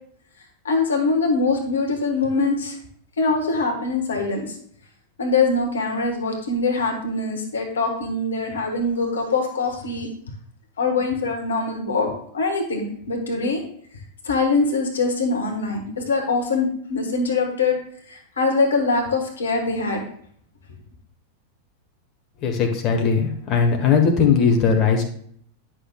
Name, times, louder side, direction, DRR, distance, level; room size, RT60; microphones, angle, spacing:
voice 1, 0.6-2.8 3.2-4.5 5.2-10.1 10.8-13.6 14.2-17.8 18.1-20.0, left 3 dB, 70° left, 3 dB, 1.2 m, -23 dB
voice 2, 22.4-25.0, left 6 dB, 35° left, 2 dB, 1.1 m, -19 dB
9.7 x 6.0 x 2.3 m, 0.62 s
figure-of-eight pair, 90°, 0 cm